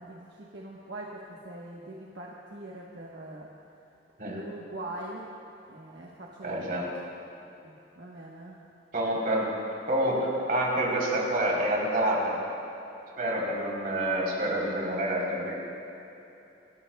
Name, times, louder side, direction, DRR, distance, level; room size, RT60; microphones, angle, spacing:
voice 1, 0.0-3.5 4.3-5.3 5.7-6.9 7.6-8.6, right 1 dB, 75° right, -4 dB, 1.1 m, -42 dB
voice 2, 6.4-6.9 8.9-9.5 9.9-12.4 13.2-15.5, right 1 dB, 50° right, -4 dB, 3.4 m, -27 dB
27.0 x 12.5 x 2.2 m, 2.9 s
head